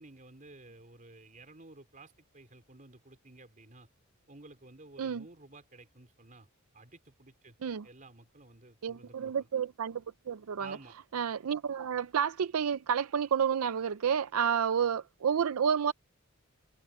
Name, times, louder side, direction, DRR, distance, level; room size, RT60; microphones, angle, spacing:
voice 1, 0.0-3.9 4.3-6.5 6.7-7.6 7.8-9.5 10.6-11.0, right 2 dB, 35° right, 3.6 m, -53 dB
voice 2, 8.8-10.8 11.1-15.9, right 7 dB, 75° right, 0.4 m, -30 dB
head